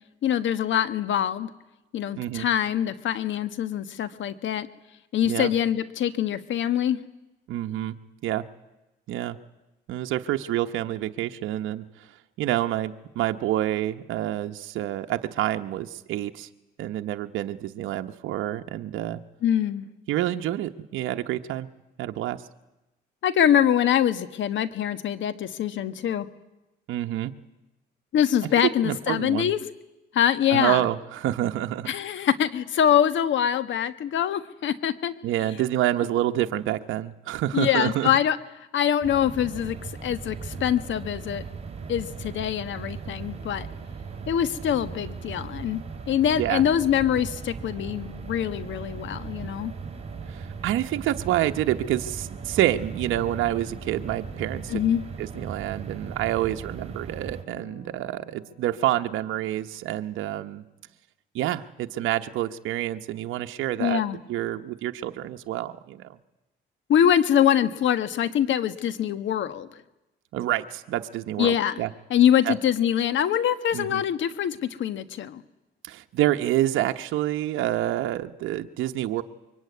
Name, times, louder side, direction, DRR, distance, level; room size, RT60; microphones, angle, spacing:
voice 1, 0.2-1.5 1.9-4.7 5.1-7.0 19.4-19.9 23.2-26.3 28.1-29.6 30.1-30.8 31.9-35.1 37.5-38.4 38.7-41.4 41.9-43.7 44.3-45.8 46.1-49.7 54.7-55.0 63.8-64.2 66.9-69.7 71.4-71.8 72.1-75.4, left 10 dB, 70° left, 13 dB, 1.4 m, -24 dB
voice 2, 2.2-2.5 5.2-5.5 7.5-7.9 8.2-8.4 9.1-9.4 9.9-12.1 12.4-16.5 16.8-19.2 20.1-21.7 22.0-22.4 26.9-27.3 28.8-29.5 30.5-31.9 35.2-38.1 46.4-46.6 50.3-54.8 55.2-60.6 61.3-64.0 64.3-66.2 70.3-71.9 72.4-72.5 73.7-74.0 75.8-79.2, right 13 dB, 85° right, 6 dB, 0.9 m, -28 dB
sound 1, 39.0-57.4, right 5 dB, 30° right, 3.6 m, -38 dB
sound 2, 53.0-57.1 57.5-60.9, left 3 dB, 90° left, 3.1 m, -52 dB
24.5 x 23.0 x 9.5 m, 0.98 s
cardioid pair, 90°, 20 cm